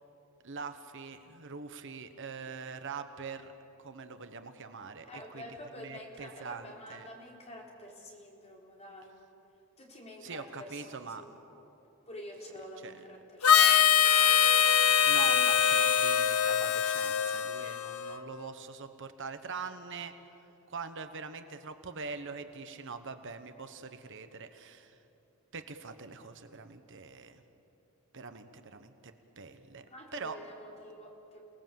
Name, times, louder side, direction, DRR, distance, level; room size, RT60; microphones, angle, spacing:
voice 1, 0.4-3.5 3.8-7.0 10.2-11.2 12.8-12.9 15.1-20.1 20.7-25.0 25.5-27.4 28.1-29.8 30.1-30.4, right 5 dB, 60° right, 9 dB, 1.2 m, -43 dB
voice 2, 5.1-9.1 9.8-11.3 12.1-14.4 15.4-15.5 29.9-31.4, left 1 dB, 30° left, -1 dB, 3.9 m, -48 dB
Harmonica, 13.4-18.2, left 8 dB, 75° left, 0.9 m, -24 dB
30.0 x 19.0 x 7.7 m, 2.9 s
head